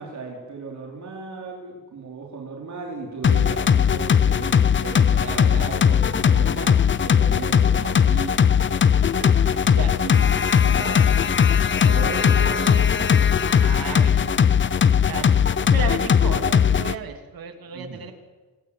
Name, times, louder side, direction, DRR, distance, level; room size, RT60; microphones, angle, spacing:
voice 1, 0.0-8.6 10.0-11.0 11.9-13.3 17.7-18.1, right 4 dB, 55° right, -1 dB, 4.2 m, -36 dB
sound 1, 3.2-16.9, left 7 dB, 35° left, 0.7 m, -19 dB
voice 2, 9.2-9.9 13.6-14.6 15.1-15.3 15.7-18.1, right 6 dB, 80° right, 5 dB, 3.1 m, -34 dB
28.0 x 20.5 x 8.7 m, 1.3 s
wide cardioid pair, 165°, 35 cm